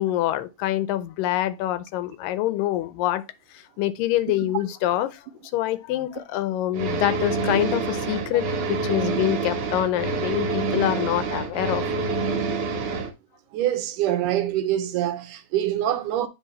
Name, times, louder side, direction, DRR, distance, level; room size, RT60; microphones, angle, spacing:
voice 1, 0.0-3.2 3.8-5.2 5.5-12.1, left 14 dB, 85° left, 2.3 m, -25 dB
sound 1, 6.7-13.1, right 4 dB, 60° right, 1.7 m, -27 dB
voice 2, 13.5-16.3, right 12 dB, 80° right, 2.1 m, -25 dB
9.0 x 4.1 x 3.1 m
omnidirectional pair, 3.8 m